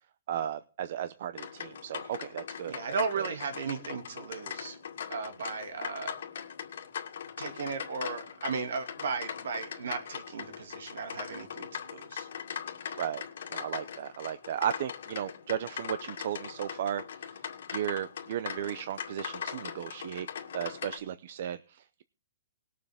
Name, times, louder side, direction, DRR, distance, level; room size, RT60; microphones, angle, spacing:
voice 1, 0.3-2.8 3.1-3.3 13.0-13.2 13.5-17.0 17.3-17.4 17.7-20.3 20.5-22.0, right 10 dB, 55° right, 14 dB, 0.6 m, -35 dB
sound 1, 1.3-21.0, left 8 dB, 70° left, 2.2 m, -41 dB
voice 2, 2.6-4.8 5.1-6.2 7.4-12.3, right 5 dB, 75° right, 7 dB, 2.2 m, -36 dB
20.0 x 7.5 x 3.5 m, 0.37 s
hypercardioid pair, 155°, 0 cm